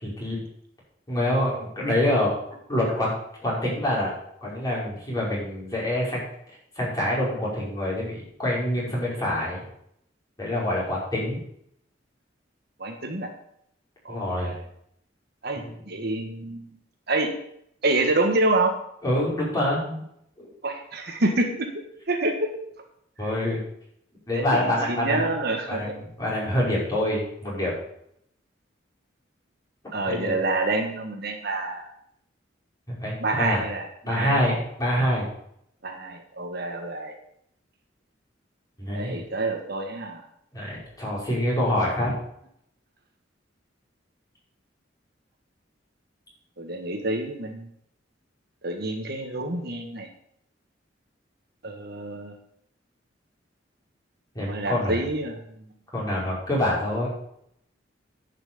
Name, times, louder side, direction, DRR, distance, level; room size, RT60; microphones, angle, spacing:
voice 1, 0.0-0.4 1.1-2.3 2.7-3.1 3.4-6.2 6.7-9.6 10.4-11.4 14.1-14.5 15.5-15.7 19.0-20.0 20.4-20.5 23.2-23.6 24.3-25.2 25.7-27.7 30.0-30.3 32.9-33.6 34.0-35.3 38.8-39.2 40.5-42.1 54.3-55.0 55.9-57.1, left 1 dB, 20° left, -6 dB, 5.2 m, -26 dB
voice 2, 12.8-13.3 14.0-14.5 15.4-16.7 17.1-17.3 17.8-18.7 20.6-21.7 22.1-22.5 23.2-23.3 24.3-25.9 29.9-31.8 33.2-34.6 35.8-37.1 38.9-40.2 46.6-47.7 48.6-50.1 51.6-52.3 54.4-55.4, right 2 dB, 60° right, 4 dB, 1.5 m, -27 dB
10.5 x 6.0 x 7.0 m, 0.72 s
head